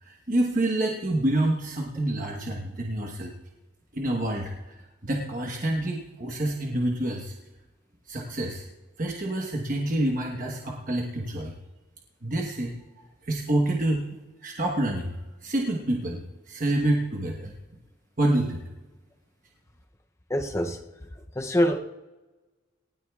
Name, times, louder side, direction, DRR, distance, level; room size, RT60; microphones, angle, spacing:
voice 1, 0.0-3.3 3.9-7.4 8.1-8.7 9.0-11.5 12.2-12.7 13.2-14.1 14.4-15.2 15.4-17.5 18.2-18.6, right 1 dB, 45° right, 0 dB, 1.2 m, -27 dB
voice 2, 20.3-21.8, equal, 15° left, 5 dB, 0.6 m, -26 dB
19.5 x 16.0 x 2.4 m, 1.2 s
head